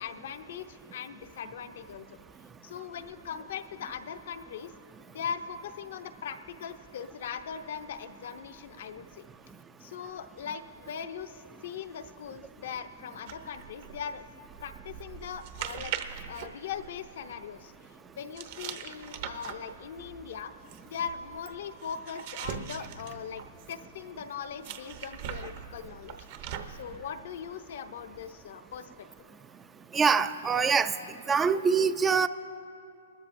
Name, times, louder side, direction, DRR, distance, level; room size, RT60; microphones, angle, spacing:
voice 1, 0.0-2.1 2.6-4.7 5.1-9.2 9.8-14.2 14.6-15.9 16.3-20.5 20.8-26.2 26.4-29.1, left 7 dB, 60° left, 8 dB, 0.7 m, -40 dB
sound 1, 13.3-17.4 18.4-23.9 24.6-27.0, right 9 dB, 50° right, 0.8 m, -41 dB
voice 2, 29.9-30.9 31.3-32.3, right 5 dB, 15° right, 11 dB, 0.3 m, -24 dB
20.0 x 13.0 x 2.6 m, 2.4 s
hypercardioid pair, 135°, 0 cm